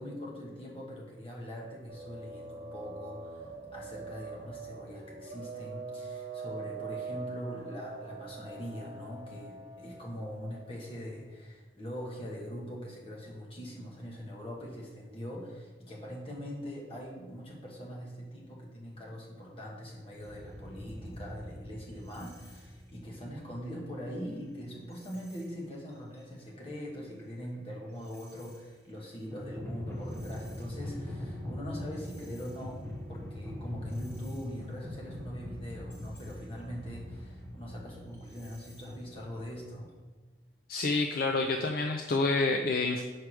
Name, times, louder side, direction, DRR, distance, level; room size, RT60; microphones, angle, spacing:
voice 1, 0.0-3.5 3.7-32.8 33.1-39.9, equal, 30° left, -2 dB, 1.4 m, -42 dB
sound 1, 1.9-11.1, right 4 dB, 45° right, 1.2 m, -43 dB
sound 2, 20.1-24.4 24.9-25.5 25.9-26.2 26.7-28.6 29.1-39.9, left 1 dB, 15° left, 1.1 m, -43 dB
voice 2, 40.7-43.0, left 3 dB, 55° left, 4 dB, 0.4 m, -28 dB
4.7 x 4.7 x 6.1 m, 1.4 s
head